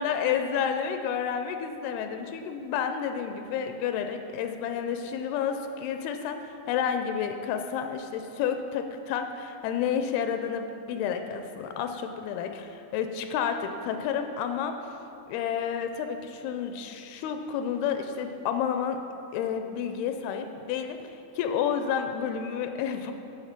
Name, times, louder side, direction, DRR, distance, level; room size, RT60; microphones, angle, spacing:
voice 1, 0.0-14.7 15.3-19.0 19.3-23.1, left 7 dB, 85° left, 7 dB, 2.4 m, -30 dB
11.5 x 5.2 x 5.8 m, 2.9 s
omnidirectional pair, 4.5 m